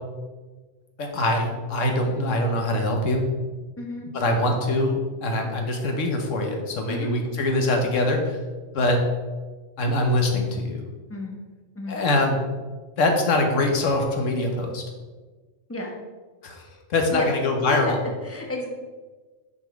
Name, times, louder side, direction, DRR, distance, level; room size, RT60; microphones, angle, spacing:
voice 1, 1.0-3.2 4.1-8.3 8.7-9.0 9.8-10.8 11.9-12.4 13.0-14.8 16.4-16.6 16.9-18.0, left 2 dB, 75° left, 3 dB, 1.5 m, -23 dB
voice 2, 3.8-4.1 6.9-7.1 11.1-11.3 11.7-12.0 15.7-15.9 17.1-17.3 17.7-17.9 18.2-18.7, left 2 dB, 10° left, 0 dB, 1.1 m, -31 dB
7.0 x 5.3 x 5.2 m, 1.3 s
omnidirectional pair, 1.3 m